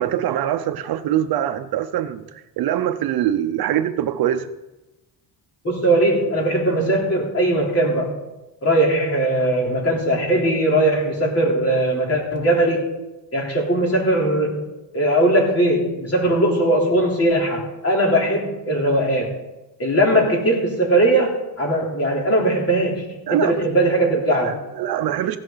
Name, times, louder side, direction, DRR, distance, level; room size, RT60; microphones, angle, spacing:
voice 1, 0.0-2.3 2.6-4.5 23.3-23.7 24.3-25.4, right 11 dB, 55° right, 9 dB, 0.8 m, -23 dB
voice 2, 5.6-8.2 8.6-12.9 13.3-14.7 14.9-19.3 19.8-24.6, right 1 dB, 35° left, -1 dB, 3.6 m, -19 dB
16.0 x 12.0 x 4.0 m, 1.0 s
cardioid pair, 135°, 43 cm